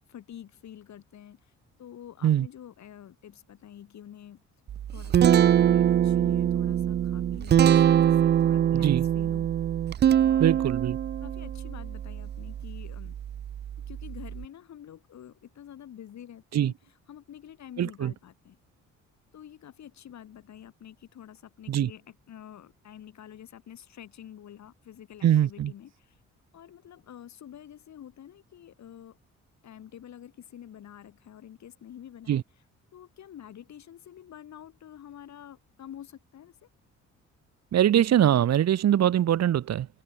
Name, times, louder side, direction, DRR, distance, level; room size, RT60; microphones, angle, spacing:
voice 1, 0.1-1.5 1.8-4.4 4.9-9.5 10.1-10.6 11.2-13.2 13.8-16.7 17.1-18.6 19.3-26.2 26.5-29.2 29.6-32.4 32.9-36.7, left 10 dB, 65° left, 5.4 m, -47 dB
Guitar, 4.7-14.4, right 10 dB, 35° right, 0.4 m, -24 dB
voice 2, 8.7-9.0 10.4-11.0 16.5-16.7 17.8-18.1 21.7-21.9 25.2-25.7 32.3-32.4 37.7-39.9, right 11 dB, 60° right, 1.3 m, -22 dB
cardioid pair, 90°, 30 cm